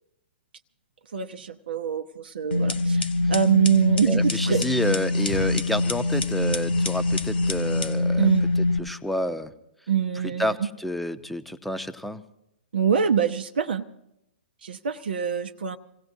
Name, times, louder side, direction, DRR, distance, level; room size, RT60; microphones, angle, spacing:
voice 1, 1.1-4.6 8.2-8.5 9.9-10.7 12.7-13.9 14.6-15.8, right 7 dB, 70° right, 5 dB, 0.8 m, -24 dB
sound 1, 2.5-8.8, left 2 dB, 75° left, 1.8 m, -24 dB
voice 2, 4.1-8.3 8.8-9.5 10.4-12.2, equal, ahead, 8 dB, 0.9 m, -29 dB
27.5 x 17.0 x 2.7 m, 0.82 s
figure-of-eight pair, 115°, 6 cm